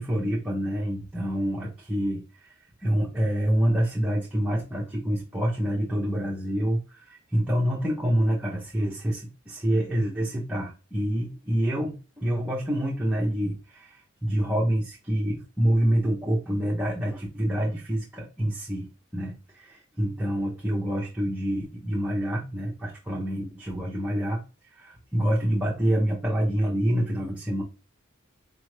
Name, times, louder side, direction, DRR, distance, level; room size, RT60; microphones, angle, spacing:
voice 1, 0.0-27.6, equal, 5° right, -5 dB, 0.8 m, -27 dB
4.3 x 2.6 x 3.2 m, 0.31 s
head